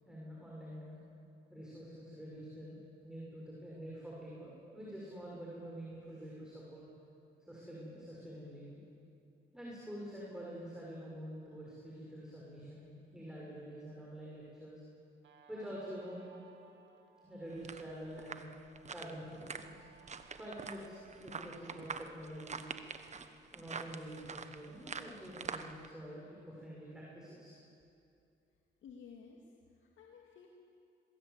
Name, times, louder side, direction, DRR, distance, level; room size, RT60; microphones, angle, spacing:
voice 1, 0.0-1.0 1.5-6.9 7.4-8.8 9.5-14.8 15.5-16.2 17.2-18.5 18.9-19.8 20.3-22.8 23.5-27.6, equal, 5° right, -5 dB, 6.5 m, -47 dB
Guitar, 15.2-22.2, right 6 dB, 65° right, 2.4 m, -64 dB
sound 1, 17.5-25.9, right 5 dB, 35° right, 1.3 m, -45 dB
voice 2, 28.8-30.5, left 6 dB, 75° left, 0 dB, 2.4 m, -55 dB
22.5 x 21.0 x 8.4 m, 2.6 s
cardioid pair, 90°, 20 cm